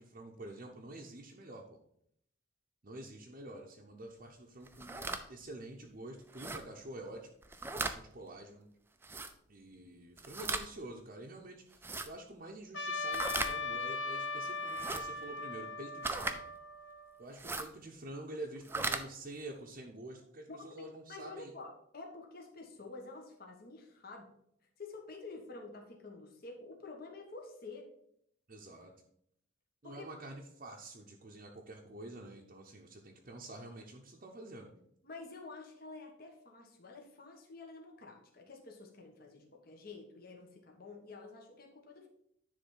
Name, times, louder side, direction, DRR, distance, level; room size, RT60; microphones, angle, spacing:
voice 1, 0.0-1.8 2.8-5.0 5.3-7.3 7.8-8.7 9.5-16.5 17.2-21.5 28.5-28.9 29.8-34.7, right 1 dB, 45° right, -1 dB, 0.7 m, -48 dB
sound 1, 4.7-5.2 6.3-6.6 7.4-8.0 9.0-9.3 10.2-10.7 11.7-12.1 13.1-13.5 14.7-15.0 16.0-16.4 17.3-17.7 18.6-19.0, right 3 dB, 10° right, 0.4 m, -37 dB
Trumpet, 12.7-17.2, left 3 dB, 70° left, 1.3 m, -39 dB
voice 2, 20.5-24.3 24.8-27.9 29.8-30.0 35.0-42.1, left 3 dB, 50° left, 1 dB, 1.2 m, -49 dB
10.0 x 3.4 x 5.5 m, 0.71 s
head